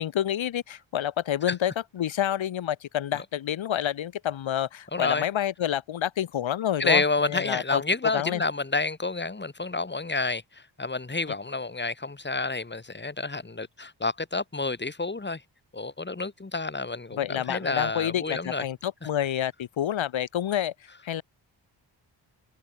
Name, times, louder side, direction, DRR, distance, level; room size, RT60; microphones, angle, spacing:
voice 1, 0.0-7.8 8.1-8.4 17.2-20.7 21.0-21.2, left 10 dB, 85° left, 4.0 m, -28 dB
voice 2, 4.9-5.3 6.8-15.4 15.7-18.6, left 3 dB, 25° left, 3.6 m, -29 dB
cardioid pair, 65°, 45 cm